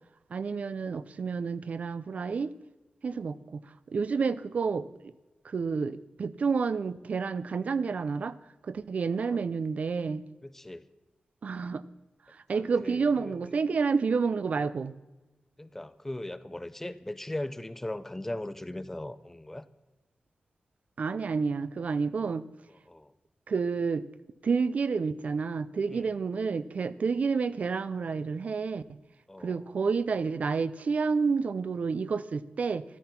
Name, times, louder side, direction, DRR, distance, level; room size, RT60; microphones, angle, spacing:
voice 1, 0.3-2.5 3.0-3.6 3.9-5.1 5.4-8.4 8.6-10.3 11.4-11.8 12.3-14.9 21.0-22.4 23.5-24.1 24.4-28.8 29.4-32.8, right 5 dB, 55° right, 15 dB, 0.5 m, -29 dB
voice 2, 10.4-10.9 12.5-13.5 15.6-19.6 22.7-23.1 25.9-26.2 29.3-29.7, left 1 dB, 10° left, 14 dB, 0.5 m, -39 dB
14.0 x 13.0 x 5.9 m, 1.1 s
wide cardioid pair, 160°, 3 cm